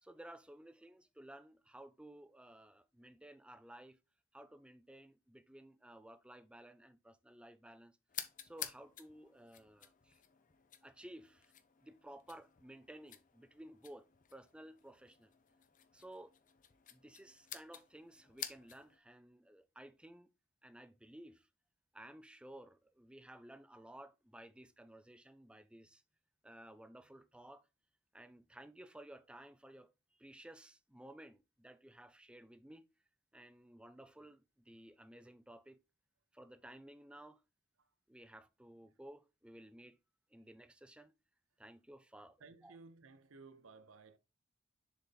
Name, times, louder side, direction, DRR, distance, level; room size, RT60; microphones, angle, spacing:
voice 1, 0.0-4.0 4.3-8.0 8.4-10.2 10.8-11.5 11.8-15.3 15.9-16.3 16.9-20.3 20.6-21.5 21.9-26.0 26.4-27.7 28.1-32.8 33.3-35.8 36.3-37.4 38.1-40.0 40.3-41.1 41.6-42.4 42.6-42.8, right 1 dB, 5° right, 0.4 m, -55 dB
sound 1, 8.1-19.0, left 10 dB, 40° left, 0.6 m, -51 dB
voice 2, 42.4-44.2, right 4 dB, 75° right, 0.6 m, -57 dB
6.9 x 4.1 x 3.9 m
head